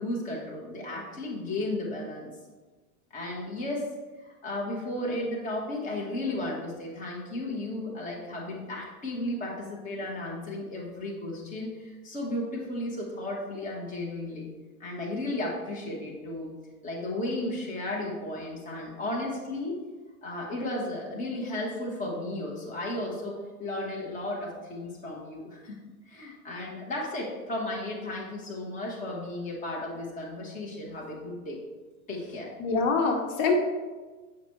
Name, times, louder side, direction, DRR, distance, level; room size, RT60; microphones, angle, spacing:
voice 1, 0.0-2.3 3.1-3.9 4.2-14.5 14.8-16.5 16.8-19.8 20.2-25.8 26.1-31.6 32.1-32.5, left 1 dB, 15° left, -3 dB, 1.3 m, -34 dB
voice 2, 32.6-33.5, left 4 dB, 60° left, 2 dB, 1.3 m, -24 dB
8.3 x 5.1 x 3.2 m, 1.3 s
supercardioid pair, 145°, 45 cm